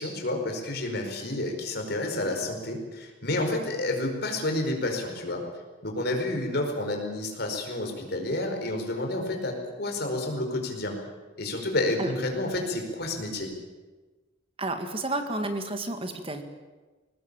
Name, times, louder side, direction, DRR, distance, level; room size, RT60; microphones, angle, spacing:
voice 1, 0.0-5.4 5.8-11.0 11.4-13.5, left 2 dB, 55° left, 3 dB, 4.9 m, -30 dB
voice 2, 14.6-16.4, right 2 dB, 30° right, 7 dB, 1.9 m, -31 dB
21.5 x 19.0 x 8.8 m, 1.3 s
head